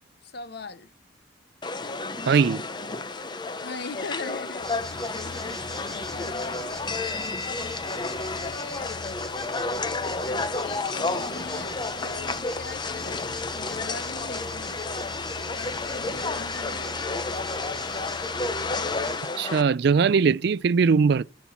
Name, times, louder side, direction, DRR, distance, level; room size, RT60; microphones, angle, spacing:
voice 1, 0.2-0.9 3.6-4.8 5.1-5.4 5.8-6.7 8.2-8.9 10.6-11.7 12.1-14.8 15.5-17.4, left 3 dB, 60° left, 0.8 m, -41 dB
sound 1, 1.6-19.6, left 3 dB, 25° left, 0.6 m, -31 dB
voice 2, 2.3-2.6 19.4-21.2, right 5 dB, 60° right, 0.4 m, -20 dB
sound 2, 4.6-19.2, left 1 dB, 5° left, 1.3 m, -41 dB
13.0 x 4.5 x 7.0 m
head